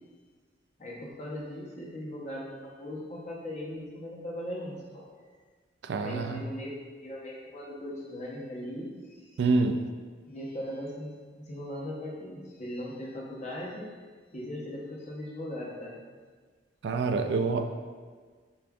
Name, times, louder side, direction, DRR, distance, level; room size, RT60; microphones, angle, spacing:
voice 1, 0.8-5.1 6.0-6.7 7.0-9.4 10.3-11.1 11.4-13.9 14.3-16.0, left 1 dB, 40° left, -4 dB, 0.8 m, -39 dB
voice 2, 5.8-6.4 9.4-9.8 16.8-17.8, right 3 dB, 70° right, 6 dB, 0.3 m, -27 dB
6.8 x 2.5 x 2.3 m, 1.5 s
head